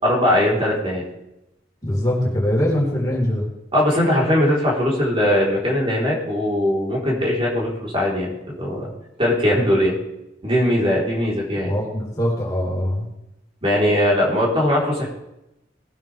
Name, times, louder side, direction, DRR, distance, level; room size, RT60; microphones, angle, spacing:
voice 1, 0.0-1.0 3.7-8.9 9.2-10.0 10.4-11.7 13.6-15.1, left 1 dB, 30° right, -4 dB, 3.8 m, -20 dB
voice 2, 1.8-3.5 11.6-13.1, left 1 dB, 20° left, -4 dB, 4.2 m, -22 dB
19.5 x 9.2 x 3.4 m, 0.89 s
head